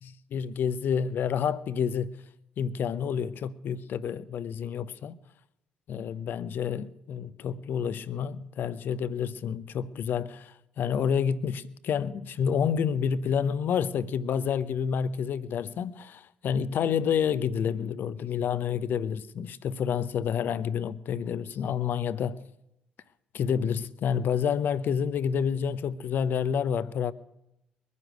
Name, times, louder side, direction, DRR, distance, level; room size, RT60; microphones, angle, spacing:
voice 1, 0.0-2.1 2.6-5.2 5.9-22.4 23.3-27.1, left 7 dB, 50° left, 0.8 m, -29 dB
22.0 x 9.7 x 6.2 m
figure-of-eight pair, 50°, 4 cm